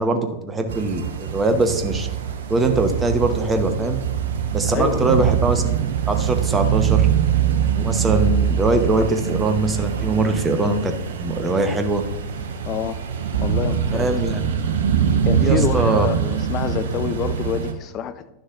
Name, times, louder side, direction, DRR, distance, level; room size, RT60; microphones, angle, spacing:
voice 1, 0.0-2.1 2.5-4.0 4.5-5.7 6.1-7.1 7.7-10.9 11.2-12.0 13.9-14.4 15.4-16.1, right 2 dB, 15° right, 6 dB, 0.9 m, -22 dB
sound 1, 0.7-17.7, right 8 dB, 60° right, 0.7 m, -23 dB
voice 2, 4.7-5.2 12.6-13.0 13.4-14.2 15.3-18.3, left 9 dB, 35° left, 10 dB, 0.6 m, -27 dB
11.0 x 6.4 x 2.5 m, 0.97 s
figure-of-eight pair, 90°, 0 cm